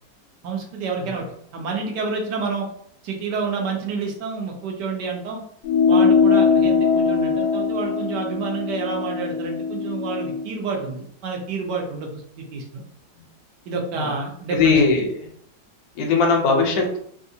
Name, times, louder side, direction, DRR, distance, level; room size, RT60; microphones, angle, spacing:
voice 1, 0.4-1.2 1.5-2.7 3.0-5.4 5.9-12.8 13.7-14.8, right 4 dB, 75° right, 0 dB, 1.3 m, -29 dB
sound 1, 5.6-10.5, left 5 dB, 85° left, 1.3 m, -20 dB
voice 2, 14.5-15.1 15.9-17.0, left 4 dB, 65° left, 2 dB, 1.1 m, -20 dB
3.5 x 2.4 x 2.7 m, 0.65 s
omnidirectional pair, 1.9 m